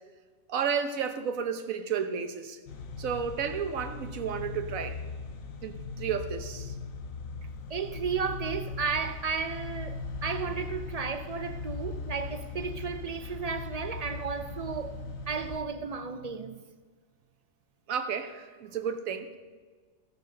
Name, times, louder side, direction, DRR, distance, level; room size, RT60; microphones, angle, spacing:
voice 1, 0.5-2.6 3.0-5.0 5.6-6.7 17.9-19.4, right 7 dB, 90° right, 1.3 m, -32 dB
sound 1, 2.7-15.6, left 4 dB, 85° left, 1.3 m, -39 dB
voice 2, 7.7-16.6, right 5 dB, 50° right, 0.4 m, -34 dB
14.5 x 6.7 x 6.5 m
omnidirectional pair, 1.4 m